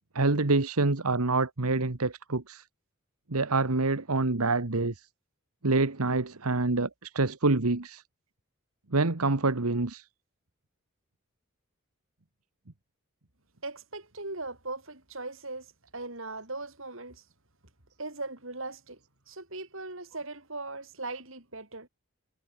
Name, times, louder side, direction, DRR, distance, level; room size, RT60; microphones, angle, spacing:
voice 1, 0.1-2.6 3.3-5.1 5.6-8.0 8.9-10.0, right 3 dB, 90° right, 1.5 m, -26 dB
voice 2, 13.6-17.2 18.0-19.0 19.3-21.9, right 2 dB, 65° right, 6.6 m, -39 dB
head